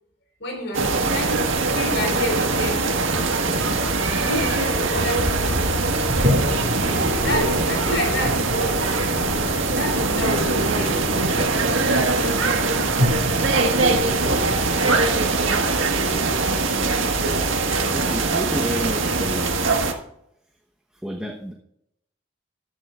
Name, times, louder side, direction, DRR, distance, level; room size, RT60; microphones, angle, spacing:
voice 1, 0.4-1.4 1.7-2.9 4.1-5.6 6.4-8.7 9.8-11.0 11.8-13.1, equal, 60° left, 2 dB, 4.6 m, -30 dB
sound 1, 0.7-19.9, right 3 dB, 85° right, 1.7 m, -22 dB
Toilet flush, 6.0-15.1, equal, 65° right, 2.4 m, -29 dB
voice 2, 17.9-19.6 21.0-21.5, equal, 5° right, -1 dB, 1.1 m, -30 dB
14.5 x 11.0 x 2.5 m, 0.76 s
head